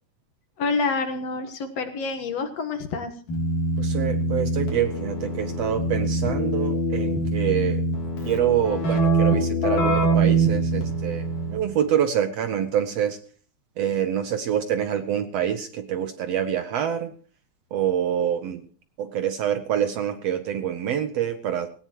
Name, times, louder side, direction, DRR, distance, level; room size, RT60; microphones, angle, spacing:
voice 1, 0.6-3.1, left 4 dB, 60° left, 7 dB, 2.3 m, -27 dB
Keyboard (musical), 3.3-11.7, right 2 dB, 90° left, 4.7 m, -24 dB
voice 2, 3.8-7.9 8.2-13.2 13.8-17.1 17.7-18.6 19.0-21.7, right 9 dB, 70° right, 9 dB, 1.6 m, -26 dB
18.5 x 18.0 x 3.0 m, 0.42 s
omnidirectional pair, 3.6 m